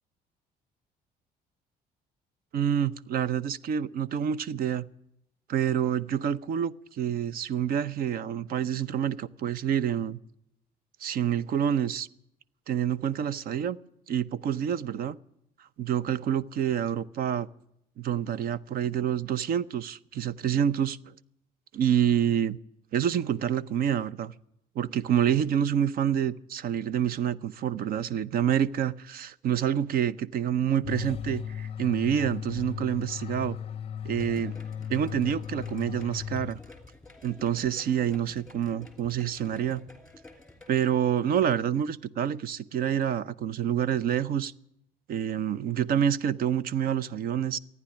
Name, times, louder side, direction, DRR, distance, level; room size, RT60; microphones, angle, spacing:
voice 1, 2.5-4.9 5.5-10.2 11.0-12.1 12.7-13.8 14.1-15.2 15.8-17.5 18.0-21.1 21.7-22.6 22.9-24.3 24.8-33.6 34.0-34.5 34.9-36.6 37.2-39.8 40.7-44.5 45.1-47.6, right 9 dB, 60° right, 0.7 m, -27 dB
sound 1, 30.8-37.0, left 8 dB, 35° left, 0.6 m, -36 dB
sound 2, 34.2-40.9, left 2 dB, 5° left, 2.8 m, -50 dB
15.0 x 9.7 x 10.0 m
cardioid pair, 110°, 17 cm